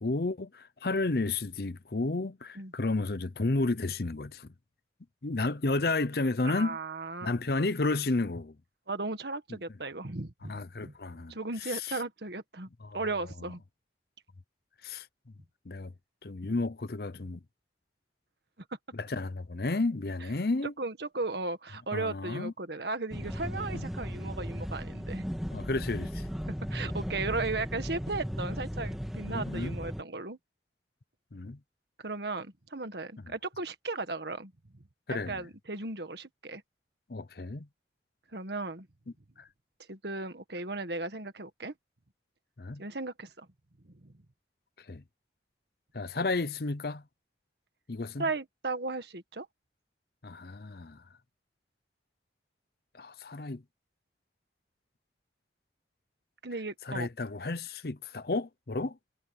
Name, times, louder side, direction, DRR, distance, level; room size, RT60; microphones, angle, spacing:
voice 1, 0.0-4.5 5.2-6.8 7.2-8.5 10.5-11.3 11.7-11.8 12.8-13.0 14.8-15.1 15.7-15.9 16.2-17.4 18.9-20.7 21.9-22.5 23.7-23.9 25.5-26.3 29.2-29.8 31.3-31.6 35.1-35.4 37.1-37.7 39.4-39.5 42.6-42.8 44.9-45.0 45.9-47.0 47.9-48.2 50.2-51.0 53.0-53.6 56.9-59.0, left 3 dB, 55° left, 0.7 m, -32 dB
voice 2, 6.4-7.3 8.9-10.9 11.3-12.7 12.9-13.6 20.6-25.2 26.7-30.4 32.0-34.5 35.1-36.6 38.3-38.9 39.9-41.7 42.8-43.5 44.0-44.1 48.2-49.5 56.4-57.1, right 3 dB, 65° right, 1.7 m, -36 dB
sound 1, 23.1-30.0, equal, ahead, 1.9 m, -36 dB
head